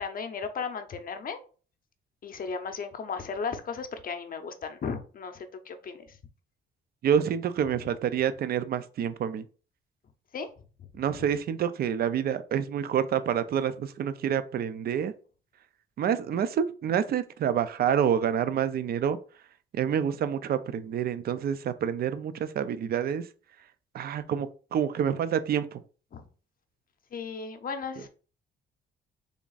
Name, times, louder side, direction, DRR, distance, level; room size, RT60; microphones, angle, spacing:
voice 1, 0.0-1.4 2.2-6.2 10.3-10.5 10.8-10.9 26.1-26.3 27.1-28.1, left 5 dB, 45° left, 0.6 m, -35 dB
voice 2, 7.0-9.5 10.9-15.1 16.0-19.2 19.7-23.3 23.9-25.8, right 8 dB, 50° right, 0.4 m, -28 dB
3.5 x 2.4 x 3.9 m
cardioid pair, 90°, 20 cm